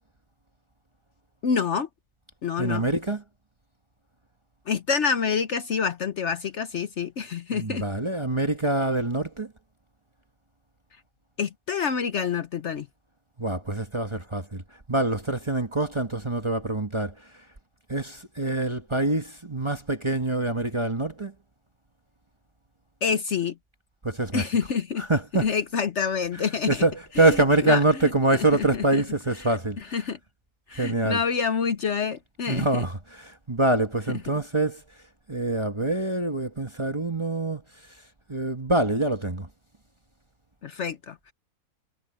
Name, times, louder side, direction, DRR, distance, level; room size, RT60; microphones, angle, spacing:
voice 1, 1.4-1.9 2.4-2.8 4.7-7.8 11.4-12.9 23.0-23.5 24.3-25.1 25.4-26.8 27.2-27.4 27.6-27.8 28.3-29.0 29.8-30.2 30.7-32.8 40.6-41.3, left 6 dB, 55° left, 1.0 m, -27 dB
voice 2, 2.6-3.2 7.5-9.5 13.4-14.6 14.9-17.1 17.9-21.3 24.0-24.5 25.0-25.5 26.7-29.8 30.7-31.2 32.5-34.8 35.3-37.6 38.3-39.5, right 2 dB, 20° right, 1.1 m, -25 dB
omnidirectional pair, 1.6 m